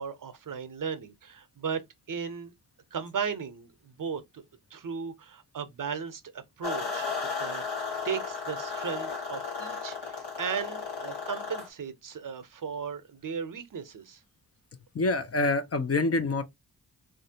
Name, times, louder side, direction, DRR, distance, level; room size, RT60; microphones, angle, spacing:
voice 1, 0.0-1.8 2.1-2.5 2.9-4.4 4.7-7.6 8.0-14.2, right 6 dB, 50° right, 0.7 m, -36 dB
sound 1, 6.6-11.7, left 5 dB, 75° left, 1.3 m, -34 dB
voice 2, 14.9-16.4, left 2 dB, 35° left, 0.6 m, -26 dB
3.2 x 2.5 x 2.7 m
supercardioid pair, 45°, 41 cm